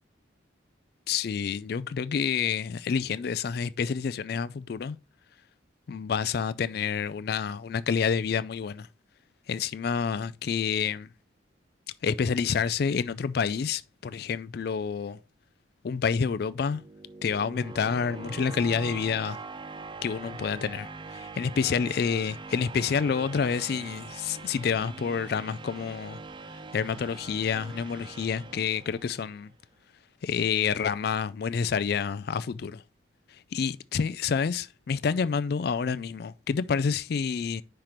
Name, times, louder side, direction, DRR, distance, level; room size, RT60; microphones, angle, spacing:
voice 1, 1.1-5.0 5.9-8.9 9.5-11.1 12.0-15.2 15.8-16.8 17.2-19.4 20.0-26.2 26.7-29.5 30.2-32.8 33.5-37.6, left 6 dB, 55° left, 0.3 m, -28 dB
sound 1, 16.4-29.4, right 4 dB, 25° right, 0.4 m, -43 dB
5.9 x 4.5 x 5.0 m
head